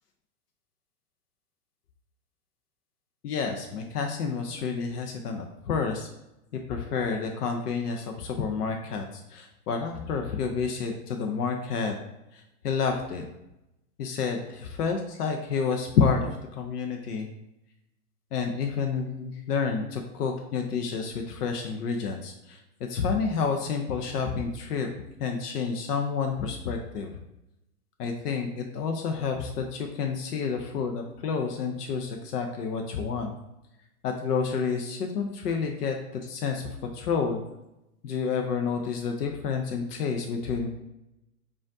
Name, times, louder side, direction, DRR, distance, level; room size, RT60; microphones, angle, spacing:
voice 1, 3.2-6.1 6.7-12.0 12.3-13.2 14.0-17.3 18.3-24.9 25.2-27.1 28.0-33.4 34.0-37.4 38.0-40.7, left 5 dB, 85° left, 3 dB, 0.6 m, -29 dB
5.0 x 2.5 x 2.5 m, 0.90 s
hypercardioid pair, 125°, 46 cm